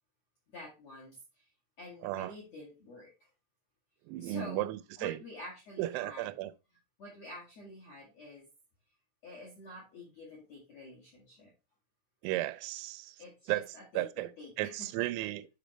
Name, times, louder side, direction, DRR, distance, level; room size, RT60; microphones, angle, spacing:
voice 1, 0.5-1.5 1.8-3.3 4.2-4.7 5.0-6.3 7.0-8.5 9.2-11.5 13.2-15.1, left 1 dB, 55° left, 1.8 m, -48 dB
voice 2, 2.0-2.4 4.1-5.2 5.8-6.5 12.2-13.2 13.5-14.3 14.6-15.5, right 17 dB, 85° right, 3.3 m, -35 dB
8.6 x 5.1 x 3.1 m
omnidirectional pair, 5.9 m